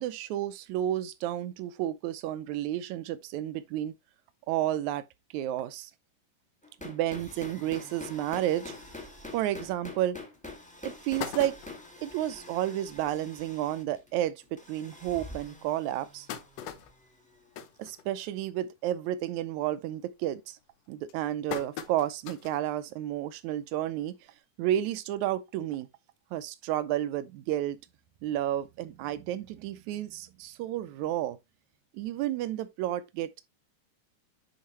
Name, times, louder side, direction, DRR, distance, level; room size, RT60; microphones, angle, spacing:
voice 1, 0.0-3.9 4.5-5.0 5.3-5.9 6.8-8.7 9.3-10.2 10.8-11.6 12.0-16.3 17.8-20.6 20.9-24.1 24.6-25.9 26.3-27.8 28.2-31.4 31.9-33.4, right 12 dB, 75° right, 1.9 m, -31 dB
sound 1, 6.6-17.4, left 2 dB, 5° left, 0.7 m, -46 dB
sound 2, 10.1-10.2 10.6-10.7 11.0-12.0 12.6-12.7 13.0-13.1 13.4-13.6 14.3-14.4 14.9-15.0 15.7-18.6 18.9-19.3 19.6-20.0 20.6-22.7 23.1-23.2 24.4-24.5, left 8 dB, 70° left, 1.6 m, -41 dB
10.5 x 4.3 x 3.0 m
omnidirectional pair, 3.8 m